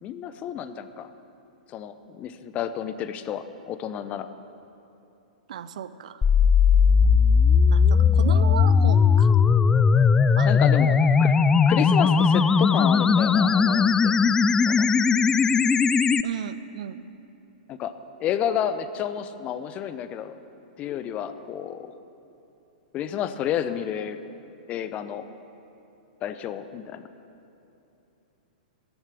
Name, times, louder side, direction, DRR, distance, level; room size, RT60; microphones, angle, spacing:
voice 1, 0.0-1.1 1.7-4.3 10.4-10.9 11.2-11.3 11.7-14.1 14.7-14.9 17.7-17.9 18.2-20.4 20.8-21.9 22.9-24.2 24.7-25.3 26.2-27.0, left 9 dB, 30° left, 12 dB, 0.7 m, -30 dB
voice 2, 5.5-6.2 7.7-9.3 10.4-10.5 16.2-17.0, right 9 dB, 65° right, 13 dB, 0.6 m, -34 dB
sound 1, 6.2-16.2, left 6 dB, 15° left, 0.3 m, -18 dB
14.0 x 7.4 x 9.9 m, 2.8 s
figure-of-eight pair, 110°, 4 cm